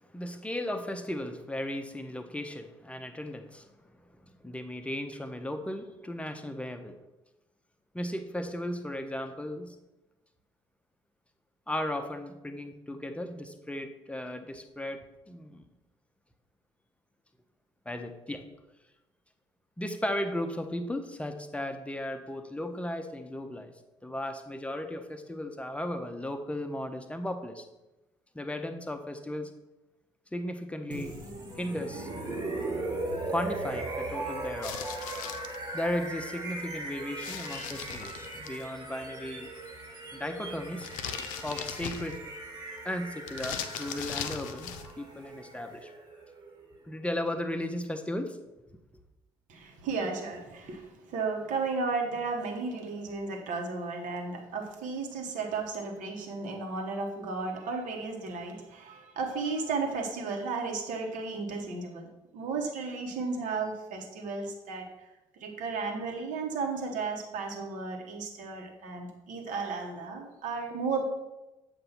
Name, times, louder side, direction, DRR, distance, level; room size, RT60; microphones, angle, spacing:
voice 1, 0.1-3.7 4.4-7.0 7.9-9.8 11.7-15.6 17.9-18.5 19.8-23.7 24.0-27.7 28.3-29.5 30.3-31.2 31.6-32.1 33.3-34.8 35.7-39.5 40.1-40.9 41.4-42.2 42.8-45.9 46.8-48.4, left 1 dB, 10° left, 7 dB, 0.7 m, -35 dB
sound 1, 30.9-46.8, right 2 dB, 25° right, 1.6 m, -39 dB
sound 2, 34.6-35.6 37.2-38.6 40.8-42.3 43.3-44.9, left 8 dB, 65° left, 0.5 m, -39 dB
voice 2, 49.5-62.1 62.3-64.8 65.4-71.0, right 4 dB, 60° right, 2 dB, 1.2 m, -34 dB
7.7 x 2.6 x 5.6 m, 1.0 s
figure-of-eight pair, 50°, 15 cm